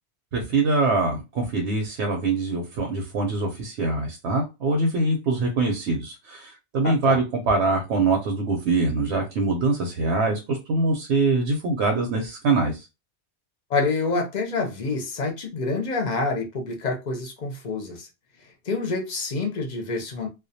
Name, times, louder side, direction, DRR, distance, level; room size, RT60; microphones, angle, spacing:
voice 1, 0.3-12.9, right 3 dB, 85° right, 0.9 m, -24 dB
voice 2, 6.8-7.2 13.7-18.1 18.7-20.3, left 3 dB, 50° left, 0.6 m, -27 dB
2.2 x 2.1 x 2.6 m
omnidirectional pair, 1.1 m